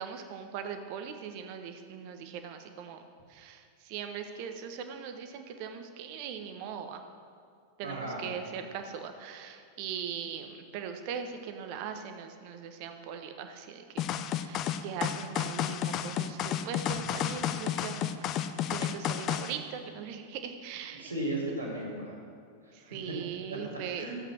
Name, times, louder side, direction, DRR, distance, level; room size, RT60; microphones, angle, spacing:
voice 1, 0.0-3.0 3.3-7.0 7.8-14.1 14.4-18.2 18.7-21.1 22.9-24.2, right 7 dB, 45° right, 7 dB, 1.1 m, -40 dB
voice 2, 7.8-8.3 21.0-22.2 22.8-23.0 24.0-24.2, right 1 dB, 85° right, -5 dB, 3.8 m, -35 dB
sound 1, 14.0-19.5, left 10 dB, 35° left, 0.6 m, -31 dB
14.0 x 8.1 x 6.3 m, 2.3 s
figure-of-eight pair, 90°, 0 cm